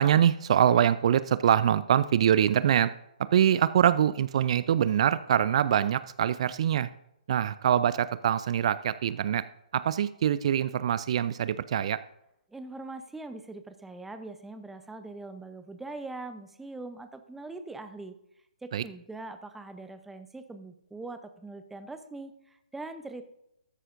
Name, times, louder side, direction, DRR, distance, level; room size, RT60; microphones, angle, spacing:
voice 1, 0.0-2.9 3.3-6.9 7.3-9.4 9.7-12.0 18.7-18.8, right 9 dB, 50° right, 15 dB, 0.4 m, -24 dB
voice 2, 12.5-18.1 18.6-23.2, right 2 dB, 5° right, 9 dB, 0.6 m, -42 dB
13.0 x 9.8 x 2.6 m, 0.81 s
hypercardioid pair, 140°, 4 cm